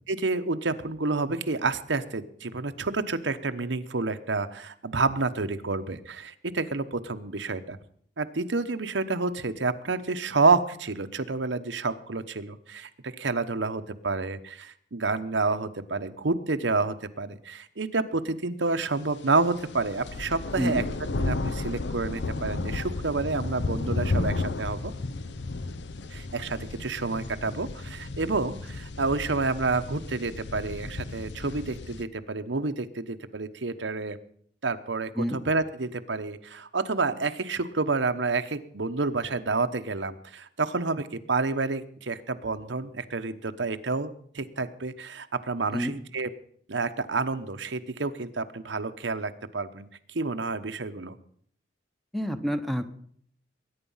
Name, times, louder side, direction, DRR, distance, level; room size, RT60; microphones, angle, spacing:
voice 1, 0.1-7.8 8.2-20.8 21.2-24.9 26.1-34.2 34.6-46.3 46.7-49.9 50.1-51.1, right 3 dB, 85° right, 8 dB, 1.0 m, -29 dB
sound 1, 19.3-32.0, left 3 dB, 75° left, 0.8 m, -33 dB
voice 2, 52.1-52.9, equal, ahead, 8 dB, 0.9 m, -28 dB
21.0 x 9.7 x 5.6 m, 0.62 s
head